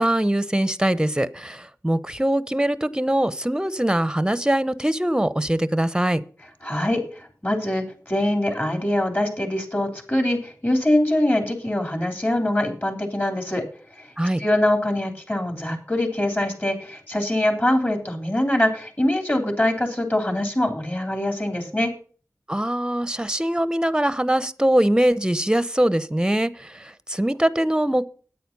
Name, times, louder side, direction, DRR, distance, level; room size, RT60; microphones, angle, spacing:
voice 1, 0.0-6.2 14.2-14.4 22.5-28.0, right 1 dB, 10° right, 16 dB, 0.8 m, -22 dB
voice 2, 6.6-13.6 14.0-14.1 14.4-21.9, left 1 dB, 30° left, 4 dB, 3.5 m, -23 dB
9.3 x 8.9 x 5.4 m, 0.43 s
wide cardioid pair, 45°, 6 cm